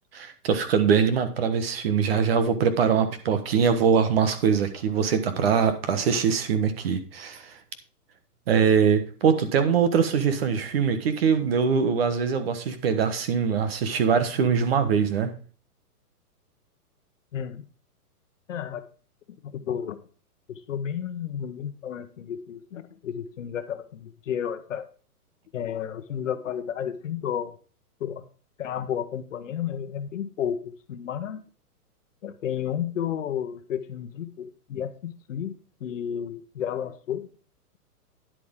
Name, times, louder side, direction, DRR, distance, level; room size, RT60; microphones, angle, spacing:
voice 1, 0.1-7.5 8.5-15.3, right 6 dB, 40° right, 10 dB, 1.3 m, -23 dB
voice 2, 17.3-17.6 18.5-18.8 19.4-20.0 20.5-24.9 25.5-27.5 28.0-28.2 28.6-31.4 32.2-35.5 35.8-37.3, left 9 dB, 55° left, 10 dB, 1.2 m, -32 dB
10.5 x 8.0 x 3.7 m, 0.38 s
hypercardioid pair, 165°, 46 cm